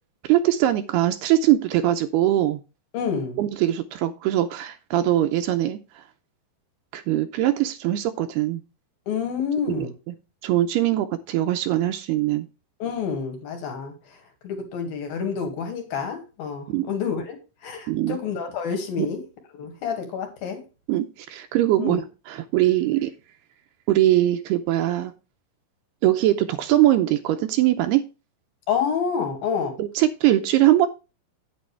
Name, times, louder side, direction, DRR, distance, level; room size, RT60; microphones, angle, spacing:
voice 1, 0.3-2.6 3.4-5.8 6.9-8.6 9.7-9.9 10.4-12.5 16.7-16.9 17.9-18.2 19.0-19.1 20.9-22.0 22.3-23.1 23.9-25.1 26.0-28.0 29.8-30.9, right 13 dB, 80° right, 8 dB, 2.5 m, -21 dB
voice 2, 2.9-3.4 9.1-9.9 12.8-13.9 14.4-17.4 17.6-19.2 19.5-20.6 21.8-22.0 28.7-29.8, left 6 dB, 60° left, 5 dB, 3.7 m, -28 dB
9.2 x 8.7 x 3.3 m, 0.30 s
omnidirectional pair, 5.0 m